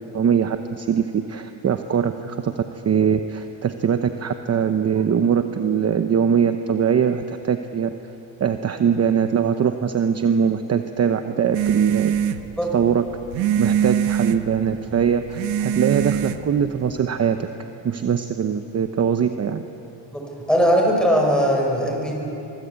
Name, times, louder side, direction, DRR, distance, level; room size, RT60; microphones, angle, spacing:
voice 1, 0.1-7.9 8.4-12.2 12.7-13.0 13.6-17.5 17.8-19.6, right 7 dB, 35° right, 8 dB, 0.9 m, -22 dB
sound 1, 11.5-17.0, right 9 dB, 85° right, 1.3 m, -24 dB
voice 2, 20.1-22.2, equal, ahead, 0 dB, 5.4 m, -20 dB
24.0 x 22.0 x 8.2 m, 3.0 s
cardioid pair, 145°, 44 cm